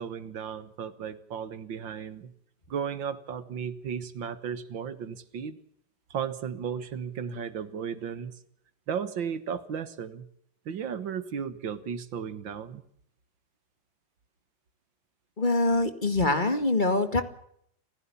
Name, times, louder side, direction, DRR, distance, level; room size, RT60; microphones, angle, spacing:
voice 1, 0.0-2.3 2.7-5.6 6.1-8.4 8.9-10.3 10.7-12.8, right 7 dB, 80° right, 14 dB, 2.2 m, -35 dB
voice 2, 15.4-17.2, left 2 dB, 25° left, 9 dB, 2.0 m, -24 dB
28.5 x 15.5 x 7.2 m, 0.69 s
omnidirectional pair, 2.0 m